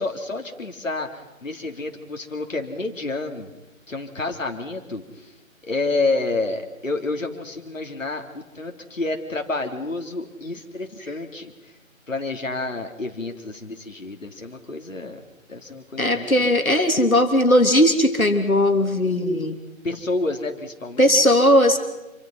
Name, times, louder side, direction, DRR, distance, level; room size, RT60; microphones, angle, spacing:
voice 1, 0.0-3.5 3.9-5.3 5.7-11.7 12.1-15.2 15.5-16.5 19.8-21.3, left 3 dB, 65° left, 3 dB, 3.3 m, -29 dB
voice 2, 16.0-19.6 21.0-21.8, left 1 dB, 85° left, 6 dB, 3.3 m, -18 dB
28.0 x 24.5 x 5.8 m, 0.99 s
figure-of-eight pair, 150°, 41 cm